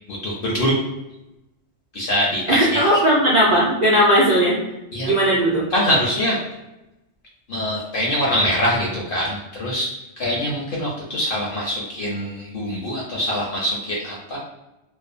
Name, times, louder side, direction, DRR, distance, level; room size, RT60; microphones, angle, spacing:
voice 1, 0.1-0.8 1.9-3.0 4.9-5.1 5.7-6.4 7.5-9.9 10.2-14.4, equal, 60° left, -3 dB, 0.6 m, -23 dB
voice 2, 2.5-4.6 5.0-5.7, equal, 55° right, -7 dB, 0.5 m, -17 dB
2.5 x 2.1 x 2.4 m, 0.96 s
omnidirectional pair, 1.3 m